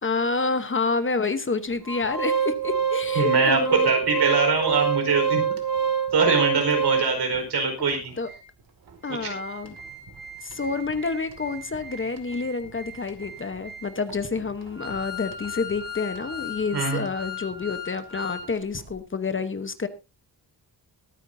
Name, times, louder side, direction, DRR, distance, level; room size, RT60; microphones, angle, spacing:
voice 1, 0.0-3.9 8.2-8.3 9.0-9.8 10.4-19.9, left 4 dB, 30° left, 10 dB, 1.1 m, -28 dB
Organ, 1.8-7.4 7.9-8.0 8.3-8.4 8.9-18.5 18.8-18.9, right 6 dB, 60° right, 2.4 m, -29 dB
voice 2, 3.1-5.4 6.1-8.1 9.2-9.3 16.7-17.0, right 4 dB, 75° right, 4 dB, 4.8 m, -23 dB
22.0 x 9.7 x 2.7 m, 0.28 s
wide cardioid pair, 170°, 40 cm